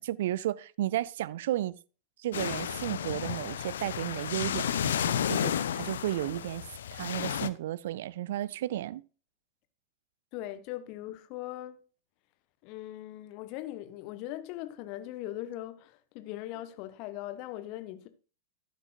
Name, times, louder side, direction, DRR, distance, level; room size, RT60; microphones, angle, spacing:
voice 1, 0.0-1.8 2.2-6.7 6.9-9.0, right 13 dB, 55° right, 0.4 m, -33 dB
sound 1, 2.3-7.5, left 9 dB, 65° left, 0.5 m, -32 dB
voice 2, 10.3-11.8 12.6-18.1, left 14 dB, 45° left, 1.0 m, -40 dB
11.5 x 9.2 x 2.4 m
figure-of-eight pair, 90°, 0 cm